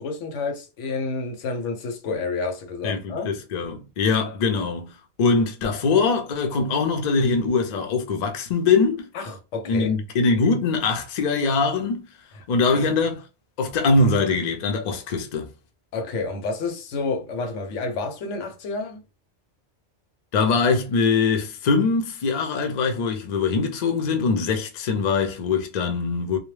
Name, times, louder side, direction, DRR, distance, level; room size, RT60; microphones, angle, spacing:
voice 1, 0.0-3.3 9.1-9.9 12.7-13.0 15.9-19.0, left 4 dB, 85° left, 1.0 m, -29 dB
voice 2, 2.8-9.1 9.7-12.1 12.5-13.2 13.6-15.5 20.3-26.4, left 4 dB, 55° left, 0.5 m, -22 dB
2.1 x 2.1 x 3.1 m
omnidirectional pair, 1.2 m